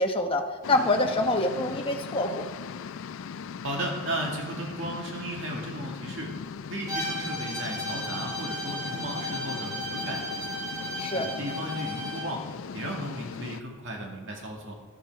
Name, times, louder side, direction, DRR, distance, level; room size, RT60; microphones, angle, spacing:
voice 1, 0.0-2.5 11.0-11.3, left 1 dB, 25° left, 3 dB, 1.0 m, -26 dB
sound 1, 0.6-13.6, left 6 dB, 70° left, 0.4 m, -39 dB
voice 2, 3.6-6.3 6.7-10.6 11.2-12.4 12.7-14.8, right 1 dB, 65° right, 0 dB, 2.1 m, -35 dB
Bowed string instrument, 6.9-12.3, equal, 20° right, 3.5 m, -35 dB
13.5 x 9.6 x 4.7 m, 1.5 s
head